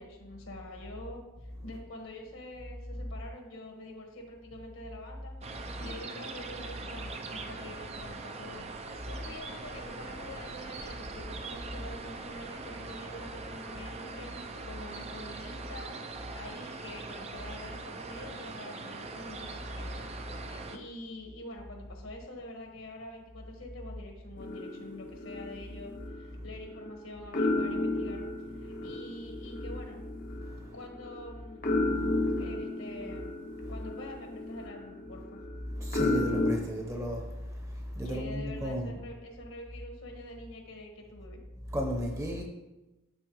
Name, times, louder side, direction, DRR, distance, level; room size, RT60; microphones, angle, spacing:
voice 1, 0.0-20.1 20.4-28.2 28.5-30.0 30.7-31.6 32.4-33.3 33.7-35.4 38.0-41.4, left 1 dB, 70° left, 1.5 m, -46 dB
sound 1, 5.4-20.8, right 3 dB, 30° right, 0.4 m, -42 dB
sound 2, 24.4-26.9 27.3-36.6, left 2 dB, 40° left, 0.7 m, -33 dB
voice 2, 30.3-30.8 31.8-32.5 33.6-33.7 35.7-39.0 41.7-42.4, equal, 15° right, 0.8 m, -35 dB
12.0 x 4.5 x 3.1 m
head